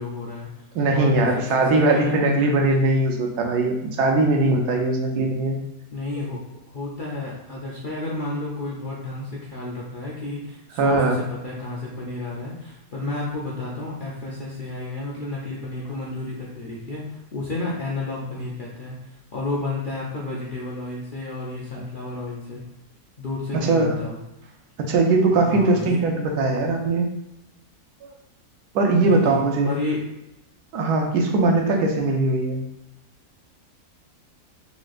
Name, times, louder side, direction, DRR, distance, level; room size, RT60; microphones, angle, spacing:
voice 1, 0.0-0.6 0.9-2.1 5.9-6.4 6.7-18.9 19.3-22.6 23.2-24.2 25.4-26.0 29.0-30.0, left 2 dB, 55° left, -5 dB, 0.5 m, -31 dB
voice 2, 0.7-5.6 10.8-11.2 23.5-23.9 24.8-27.1 28.0-28.1 28.7-29.7 30.7-32.6, right 2 dB, 90° right, 2 dB, 1.2 m, -20 dB
4.2 x 3.0 x 2.4 m, 0.91 s
omnidirectional pair, 1.6 m